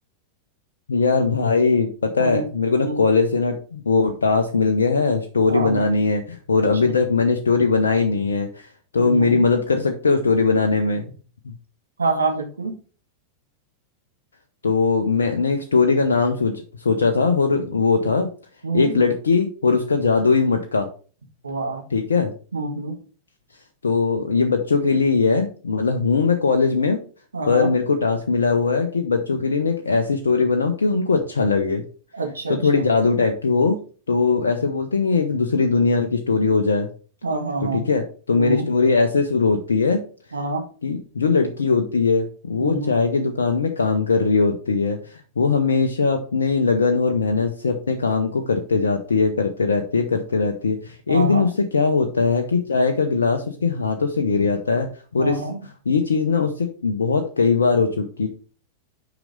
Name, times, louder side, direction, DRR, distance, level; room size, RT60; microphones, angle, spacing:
voice 1, 0.9-8.7 8.9-11.0 14.6-18.3 18.7-20.9 21.9-22.3 23.8-27.0 27.5-31.8 32.6-33.8 34.1-36.9 37.7-40.0 40.8-55.4 55.9-58.3, left 4 dB, 70° left, 5 dB, 0.7 m, -20 dB
voice 2, 5.5-5.8 6.8-6.9 9.0-9.4 12.0-12.8 18.6-19.1 21.4-21.8 22.5-23.0 27.3-27.7 32.1-32.9 37.2-37.8 38.4-38.7 40.3-40.6 42.6-42.9 51.1-51.5 55.2-55.6, right 3 dB, 75° right, 3 dB, 1.6 m, -26 dB
6.0 x 5.0 x 5.1 m, 0.40 s
figure-of-eight pair, 90°, 0 cm